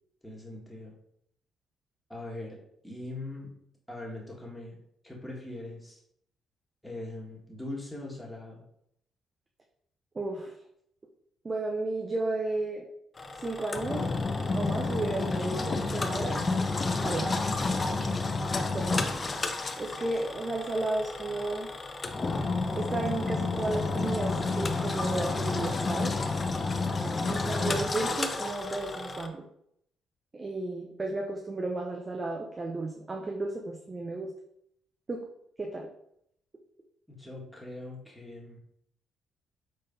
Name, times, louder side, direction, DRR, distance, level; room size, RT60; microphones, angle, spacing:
voice 1, 0.2-0.9 2.1-2.6 2.8-3.5 3.9-4.8 5.0-6.0 6.8-8.6 37.1-38.6, left 2 dB, 10° left, -3 dB, 1.6 m, -41 dB
voice 2, 10.1-10.5 11.4-12.9 13.4-14.1 14.5-16.4 17.0-17.4 18.7-19.0 19.8-21.7 22.7-26.1 27.2-29.5 30.3-34.3 35.1-35.2 35.6-35.9, right 2 dB, 30° right, 0 dB, 0.6 m, -33 dB
Engine, 13.2-29.3, left 3 dB, 35° left, 0.5 m, -30 dB
5.3 x 3.8 x 2.7 m, 0.74 s
hypercardioid pair, 45°, 0 cm